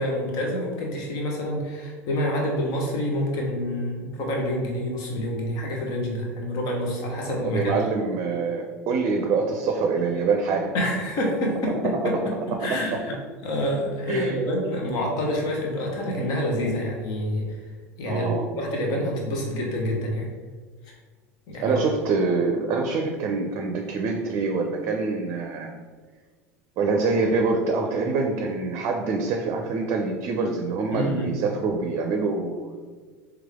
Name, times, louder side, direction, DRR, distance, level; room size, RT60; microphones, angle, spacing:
voice 1, 0.0-7.8 10.7-12.2 12.6-13.2 13.4-17.4 18.0-20.3 21.5-21.8 30.9-31.3, equal, 55° left, -1 dB, 1.1 m, -27 dB
voice 2, 7.4-10.7 14.1-14.4 18.1-18.5 21.6-25.7 26.8-32.7, right 4 dB, 50° right, 3 dB, 0.5 m, -25 dB
3.4 x 3.3 x 3.6 m, 1.4 s
hypercardioid pair, 85°, 8 cm